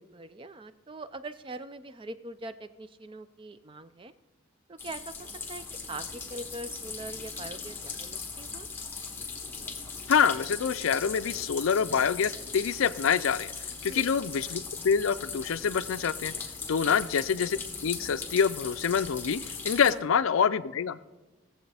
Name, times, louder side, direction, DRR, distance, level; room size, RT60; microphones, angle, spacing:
voice 1, 0.1-4.1 4.7-8.7 13.9-14.0 16.8-17.0 19.9-20.0, right 2 dB, 25° right, 12 dB, 0.4 m, -42 dB
sound 1, 4.8-19.9, left 4 dB, 10° left, 1.1 m, -39 dB
voice 2, 10.1-16.3 16.7-21.0, left 6 dB, 75° left, 14 dB, 0.4 m, -26 dB
18.0 x 7.6 x 3.4 m, 1.1 s
head